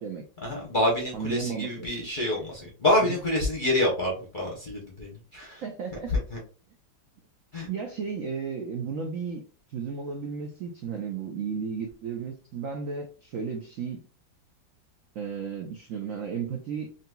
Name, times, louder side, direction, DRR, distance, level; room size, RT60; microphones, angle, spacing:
voice 1, 0.4-5.6 6.1-6.4 7.5-7.7, left 1 dB, 45° left, -2 dB, 0.6 m, -27 dB
voice 2, 1.1-2.1 5.6-6.1 7.7-9.4 9.7-14.0 15.1-16.9, right 6 dB, 90° right, 3 dB, 0.7 m, -34 dB
3.9 x 2.8 x 2.2 m, 0.38 s
omnidirectional pair, 2.1 m